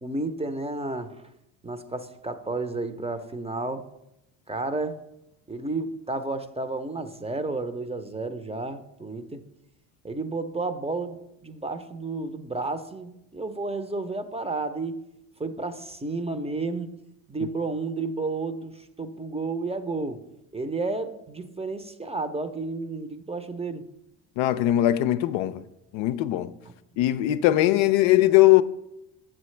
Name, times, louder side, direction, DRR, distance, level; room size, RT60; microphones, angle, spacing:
voice 1, 0.0-1.2 1.6-3.8 4.5-5.0 5.5-9.4 10.0-15.0 15.4-16.9 17.3-18.7 19.0-20.2 20.5-23.8, right 3 dB, 15° right, 0.6 m, -31 dB
voice 2, 24.4-25.6 25.9-26.5 27.0-28.6, left 15 dB, 75° left, 0.5 m, -20 dB
7.5 x 7.5 x 3.2 m
supercardioid pair, 65°, 47 cm